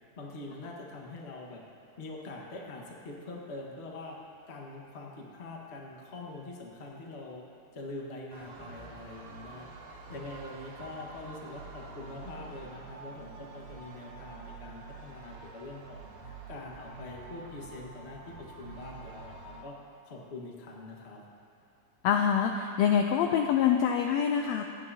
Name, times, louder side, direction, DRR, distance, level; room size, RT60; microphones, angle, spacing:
voice 1, 0.2-1.6 2.0-4.2 4.5-7.4 7.7-19.7 20.1-21.2, left 2 dB, 50° left, -1 dB, 0.7 m, -44 dB
sound 1, 8.3-19.7, right 4 dB, 75° right, 2.7 m, -47 dB
voice 2, 22.0-24.6, left 8 dB, 90° left, 4 dB, 1.5 m, -25 dB
25.0 x 9.3 x 2.8 m, 2.5 s
omnidirectional pair, 3.6 m